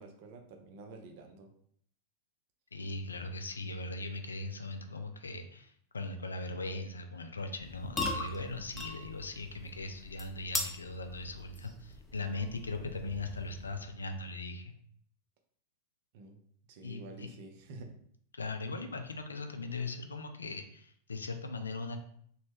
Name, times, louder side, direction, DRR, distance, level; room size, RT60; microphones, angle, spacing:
voice 1, 0.0-1.5 12.6-12.9 16.1-16.4 16.7-17.9, right 3 dB, 50° right, 4 dB, 0.5 m, -49 dB
voice 2, 2.7-14.8 16.8-17.3 18.4-22.0, left 2 dB, 75° left, 6 dB, 0.3 m, -39 dB
sound 1, 7.6-14.0, left 2 dB, 10° left, 0.5 m, -41 dB
3.0 x 2.1 x 3.3 m, 0.63 s
figure-of-eight pair, 90°, 0 cm